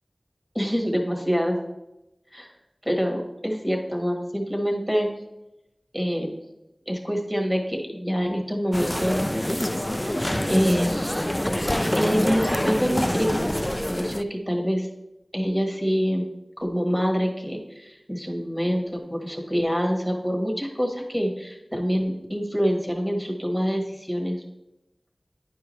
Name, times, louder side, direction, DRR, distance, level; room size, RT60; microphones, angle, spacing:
voice 1, 0.5-1.5 2.3-2.5 2.8-5.1 5.9-6.4 6.9-9.7 10.0-11.3 11.9-13.6 13.8-14.9 15.3-16.2 16.6-24.4, equal, ahead, 2 dB, 1.4 m, -26 dB
sound 1, 8.7-14.2, left 1 dB, 15° left, 0.3 m, -26 dB
10.5 x 4.7 x 3.1 m, 0.93 s
wide cardioid pair, 55°, 0 cm